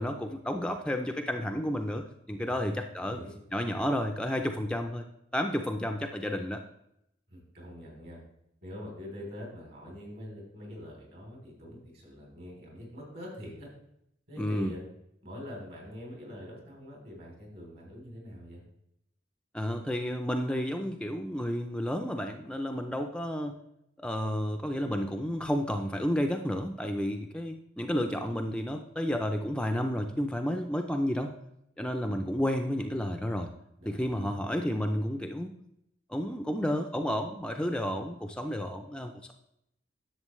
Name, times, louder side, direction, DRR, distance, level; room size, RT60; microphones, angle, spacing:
voice 1, 0.0-3.2 3.5-5.0 5.3-6.6 14.4-14.8 19.5-23.6 24.0-31.3 31.8-33.5 33.9-35.5 36.1-39.3, equal, 5° left, 5 dB, 0.4 m, -31 dB
voice 2, 2.4-3.4 7.3-8.2 8.6-13.7 14.3-14.8 15.2-18.6 33.8-34.4, left 1 dB, 60° right, -1 dB, 3.3 m, -44 dB
11.0 x 7.0 x 3.1 m, 0.77 s
head